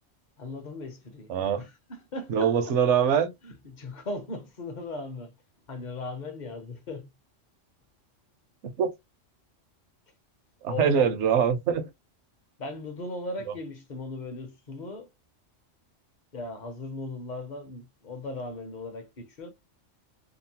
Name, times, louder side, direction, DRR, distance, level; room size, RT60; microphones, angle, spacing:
voice 1, 0.4-1.3 1.6-2.7 3.4-5.3 5.7-7.1 10.7-11.1 12.6-15.1 16.3-19.5, left 2 dB, 45° left, 0.7 m, -38 dB
voice 2, 1.3-1.6 2.3-3.3 8.6-8.9 10.6-11.9, right 7 dB, 70° right, 0.9 m, -23 dB
2.8 x 2.0 x 2.7 m
omnidirectional pair, 1.3 m